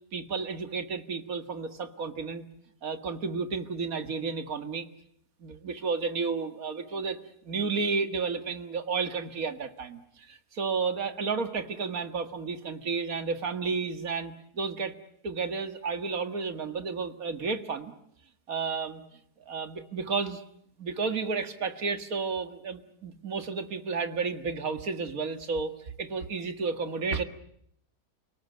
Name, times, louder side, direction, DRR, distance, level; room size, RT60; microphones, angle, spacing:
voice 1, 0.1-2.5 2.8-4.9 5.4-7.2 7.4-14.9 15.2-17.9 18.5-19.0 19.5-20.4 20.8-25.7 26.0-27.2, right 4 dB, 60° right, 9 dB, 2.2 m, -32 dB
29.5 x 19.0 x 9.2 m, 0.71 s
omnidirectional pair, 1.7 m